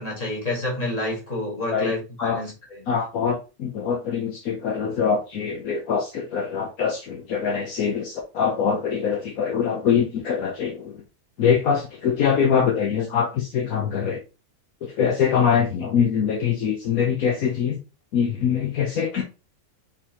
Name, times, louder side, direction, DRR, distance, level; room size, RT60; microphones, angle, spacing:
voice 1, 0.0-2.8, left 1 dB, 25° left, 1.9 m, -29 dB
voice 2, 2.9-11.0 11.4-14.2 14.8-17.8 18.1-19.2, left 7 dB, 70° left, 1.2 m, -23 dB
4.6 x 3.6 x 2.9 m
omnidirectional pair, 1.6 m